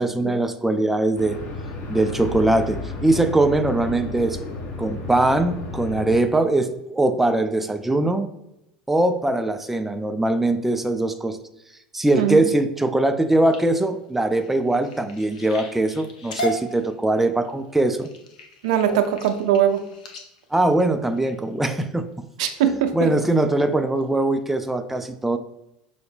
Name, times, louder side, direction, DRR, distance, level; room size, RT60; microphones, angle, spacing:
voice 1, 0.0-1.4 1.9-4.4 4.8-8.3 8.9-11.4 11.9-18.1 18.9-19.0 20.5-22.1 22.9-25.4, right 2 dB, 5° right, 8 dB, 0.3 m, -21 dB
sound 1, 1.2-6.2, left 3 dB, 45° left, 0.9 m, -33 dB
sound 2, 13.1-21.8 22.4-22.8 23.2-23.6 24.0-24.1 24.4-24.5, equal, 75° left, 0.6 m, -37 dB
voice 2, 18.6-19.8 22.4-23.1, right 9 dB, 70° right, 7 dB, 0.5 m, -21 dB
5.5 x 2.0 x 3.3 m, 0.87 s
hypercardioid pair, 75°, 4 cm